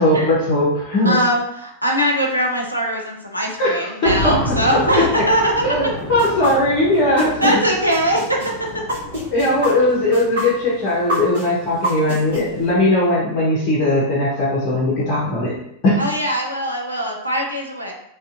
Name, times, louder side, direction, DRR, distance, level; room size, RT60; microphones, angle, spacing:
voice 1, 0.0-1.2 3.6-4.3 5.1-5.2 5.6-7.5 9.3-15.5 15.8-16.0, left 1 dB, 35° left, -5 dB, 0.7 m, -18 dB
voice 2, 1.0-5.5 7.4-8.4 16.0-17.9, equal, 90° right, -1 dB, 0.5 m, -21 dB
sound 1, 4.0-12.7, left 1 dB, 10° left, 1.1 m, -32 dB
sound 2, 6.2-7.5 7.9-12.4, equal, 60° right, 0.9 m, -25 dB
2.6 x 2.4 x 2.4 m, 0.78 s
figure-of-eight pair, 90°, 0 cm